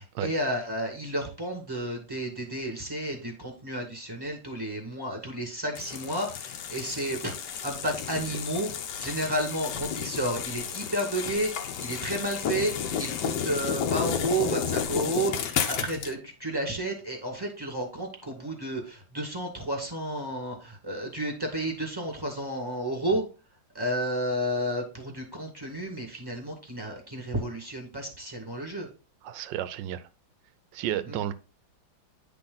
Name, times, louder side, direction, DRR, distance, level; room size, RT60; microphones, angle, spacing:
voice 1, 0.0-8.7 9.0-23.3 23.7-28.9 31.1-31.2, right 1 dB, 10° right, 2 dB, 1.7 m, -31 dB
sound 1, 5.7-16.1, left 8 dB, 65° left, 1.2 m, -32 dB
voice 2, 29.2-30.1 30.7-31.3, right 11 dB, 70° right, 14 dB, 1.1 m, -32 dB
9.9 x 3.6 x 3.9 m, 0.33 s
omnidirectional pair, 2.3 m